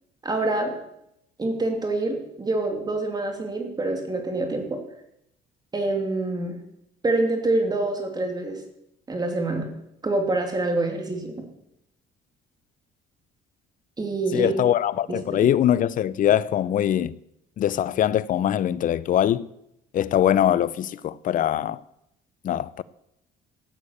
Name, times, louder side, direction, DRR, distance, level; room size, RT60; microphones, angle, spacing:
voice 1, 0.2-0.7 1.4-4.8 5.7-6.6 7.0-8.6 9.1-9.7 10.0-11.4 14.0-14.5 15.1-15.5, right 2 dB, 25° right, 3.1 m, -26 dB
voice 2, 14.3-17.1 17.6-19.5 19.9-21.8 22.4-22.8, left 11 dB, 50° left, 0.7 m, -22 dB
14.5 x 8.3 x 8.6 m
cardioid pair, 110°, 17 cm